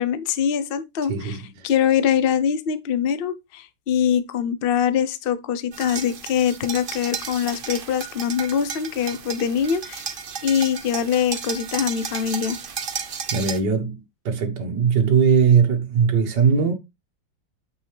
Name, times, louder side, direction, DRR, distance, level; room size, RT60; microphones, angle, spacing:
voice 1, 0.0-1.4 1.6-10.0 10.4-12.6, left 8 dB, 65° left, 0.5 m, -23 dB
voice 2, 1.1-1.7 13.3-16.7, right 6 dB, 60° right, 1.8 m, -20 dB
sound 1, 5.7-13.6, right 6 dB, 85° right, 0.4 m, -33 dB
8.8 x 5.4 x 3.3 m
omnidirectional pair, 2.2 m